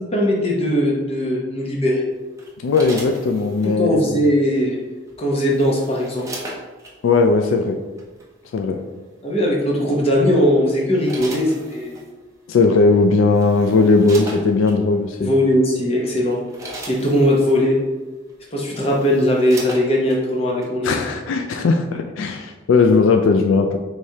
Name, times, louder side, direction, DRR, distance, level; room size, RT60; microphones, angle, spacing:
voice 1, 0.0-2.0 3.6-4.8 5.2-6.3 9.2-12.0 15.2-16.4 16.8-17.8 18.5-21.1, equal, 30° left, -3 dB, 0.8 m, -19 dB
sound 1, 2.4-3.8 5.1-6.9 8.0-8.2 9.9-10.2 10.7-12.1 12.9-13.0 13.3-14.8 15.5-15.7 16.1-17.6 18.3-18.4 18.7-20.2 20.6-20.7, right 1 dB, 15° right, 0.6 m, -37 dB
voice 2, 2.6-4.0 7.0-7.8 8.5-8.8 12.5-15.3 20.8-23.8, left 4 dB, 80° left, 5 dB, 0.3 m, -17 dB
4.8 x 3.2 x 2.8 m, 1.2 s
head